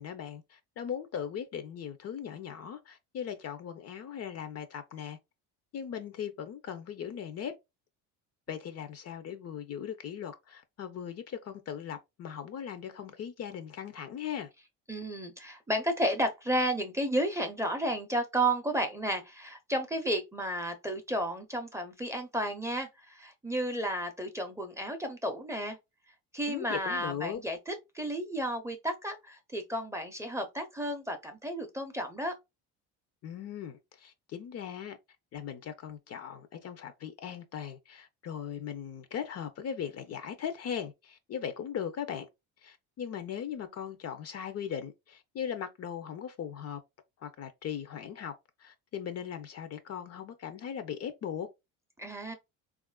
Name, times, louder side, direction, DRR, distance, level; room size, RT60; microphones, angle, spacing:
voice 1, 0.0-5.2 5.7-7.6 8.5-14.5 26.5-27.4 33.2-35.0 35.3-42.3 42.6-46.8 47.2-48.3 48.6-51.5, left 8 dB, 40° left, 0.5 m, -39 dB
voice 2, 14.9-25.8 26.3-32.3 52.0-52.3, right 1 dB, 10° right, 0.5 m, -32 dB
3.4 x 2.4 x 2.2 m
supercardioid pair, 95°, 37 cm